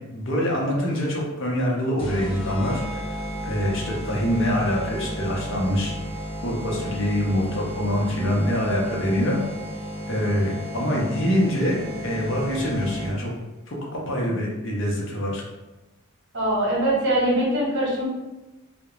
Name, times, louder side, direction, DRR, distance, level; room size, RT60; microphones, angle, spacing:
voice 1, 0.1-3.2 3.4-6.0 6.4-9.4 10.1-13.3 13.7-15.4, equal, 55° left, -3 dB, 0.6 m, -25 dB
sound 1, 2.0-13.4, equal, 25° left, 0.3 m, -33 dB
voice 2, 16.3-18.1, right 1 dB, 50° right, -5 dB, 1.0 m, -22 dB
2.4 x 2.1 x 2.9 m, 1.1 s
head